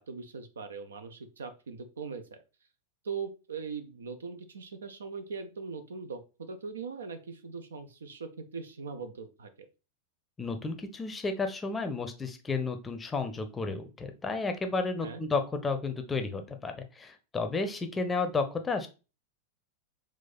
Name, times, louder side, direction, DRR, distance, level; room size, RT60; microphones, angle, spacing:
voice 1, 0.0-2.4 3.0-9.7 15.0-15.2, right 5 dB, 70° right, 9 dB, 0.5 m, -40 dB
voice 2, 10.4-18.9, left 4 dB, 15° left, 7 dB, 0.6 m, -32 dB
4.1 x 2.4 x 4.0 m, 0.31 s
figure-of-eight pair, 90°, 0 cm